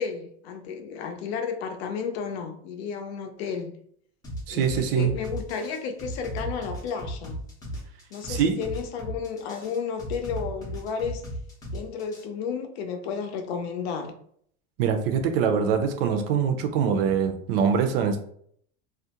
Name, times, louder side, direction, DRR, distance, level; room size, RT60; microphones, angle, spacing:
voice 1, 0.0-3.7 4.5-7.4 8.1-11.2 11.7-14.1, left 6 dB, 70° left, 5 dB, 0.5 m, -32 dB
sound 1, 4.2-12.2, equal, 10° left, 0.5 m, -36 dB
voice 2, 4.5-5.1 8.3-8.6 14.8-18.2, right 7 dB, 60° right, 6 dB, 0.5 m, -23 dB
2.4 x 2.1 x 2.8 m, 0.64 s
supercardioid pair, 160°, 33 cm